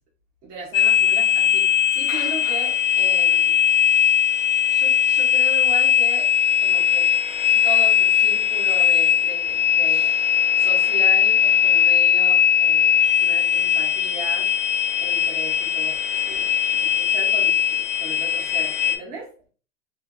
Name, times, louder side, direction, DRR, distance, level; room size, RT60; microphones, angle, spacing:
voice 1, 0.4-1.7 1.9-3.5 4.7-6.3 6.6-7.1 7.6-10.2 10.5-12.9 13.2-14.5 15.0-16.0 16.3-16.4 16.7-19.5, right 4 dB, 15° right, -6 dB, 0.6 m, -36 dB
sound 1, 0.7-19.0, left 9 dB, 80° left, 0.7 m, -19 dB
2.7 x 2.1 x 2.3 m, 0.39 s
supercardioid pair, 175°, 38 cm